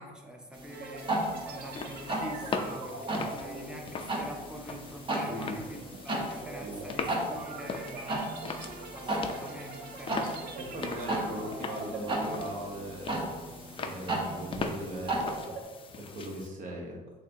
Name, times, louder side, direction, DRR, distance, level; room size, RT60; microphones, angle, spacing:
voice 1, 0.0-8.3 8.9-10.1, right 1 dB, 5° right, 1 dB, 0.7 m, -45 dB
sound 1, 0.5-15.4, right 1 dB, 30° right, 1.0 m, -36 dB
sound 2, 0.7-13.2 13.6-13.8 14.3-15.6, right 3 dB, 70° right, 0.6 m, -44 dB
sound 3, 1.0-16.5, left 4 dB, 30° left, 0.4 m, -41 dB
voice 2, 5.3-5.6 6.6-6.8 10.6-13.2 13.8-15.5 16.0-17.0, right 1 dB, 50° right, 0 dB, 1.1 m, -39 dB
6.5 x 2.6 x 2.9 m, 1.3 s
cardioid pair, 110°, 17 cm